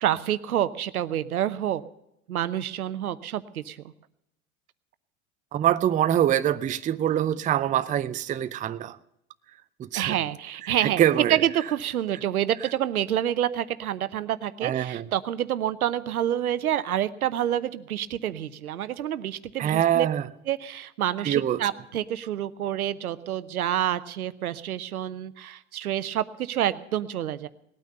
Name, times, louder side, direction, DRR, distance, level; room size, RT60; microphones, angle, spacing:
voice 1, 0.0-1.8 2.3-3.8 9.9-11.0 11.3-20.1 20.5-27.5, right 11 dB, 80° right, 0.8 m, -28 dB
voice 2, 5.5-9.0 9.8-10.2 10.6-11.4 14.6-15.0 19.6-20.3 21.2-21.6, right 11 dB, 20° right, 0.5 m, -24 dB
19.0 x 9.2 x 6.7 m
hypercardioid pair, 85°, 43 cm